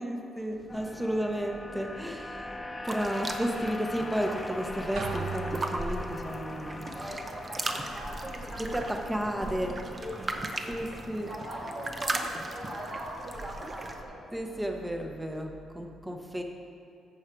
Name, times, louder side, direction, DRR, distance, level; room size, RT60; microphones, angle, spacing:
voice 1, 0.0-6.9 8.6-9.7 10.7-11.3 14.3-16.4, equal, 10° right, 3 dB, 1.0 m, -33 dB
sound 1, 0.7-14.9, left 2 dB, 20° left, 0.4 m, -43 dB
sound 2, 2.9-14.0, right 2 dB, 30° right, 0.8 m, -38 dB
sound 3, 5.0-6.4, right 3 dB, 80° right, 1.3 m, -36 dB
voice 2, 7.0-8.7 8.9-9.1 9.4-10.7 11.2-14.2, right 1 dB, 45° right, -7 dB, 1.9 m, -41 dB
14.0 x 4.9 x 4.6 m, 2.8 s
cardioid pair, 90°, 0 cm